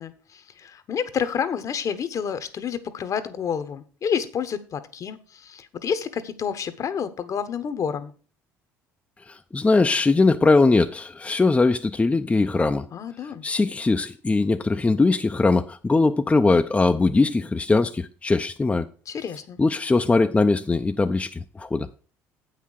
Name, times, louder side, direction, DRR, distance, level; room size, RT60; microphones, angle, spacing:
voice 1, 0.0-8.1 12.9-13.4 19.1-19.6, left 7 dB, 50° left, 1.1 m, -29 dB
voice 2, 9.3-12.9 13.4-18.9 19.6-21.9, left 3 dB, 20° left, 0.6 m, -21 dB
8.2 x 5.8 x 6.4 m
hypercardioid pair, 65°, 7 cm